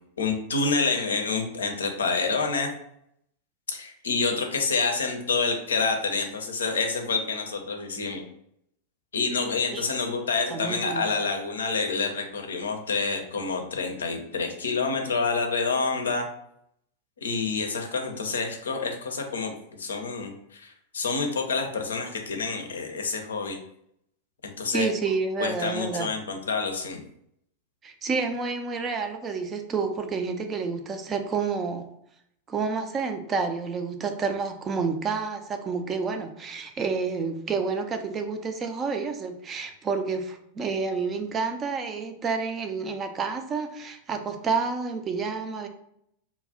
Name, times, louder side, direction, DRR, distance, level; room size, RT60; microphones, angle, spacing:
voice 1, 0.2-2.7 3.7-8.2 9.1-16.3 17.2-19.5 19.8-23.6 24.4-24.9 25.4-27.0, left 4 dB, 70° left, 4 dB, 0.5 m, -28 dB
voice 2, 10.5-11.0 24.7-26.1 27.8-31.8 32.5-45.7, right 5 dB, 25° right, 6 dB, 0.4 m, -29 dB
2.3 x 2.0 x 3.6 m, 0.72 s
figure-of-eight pair, 90°, 0 cm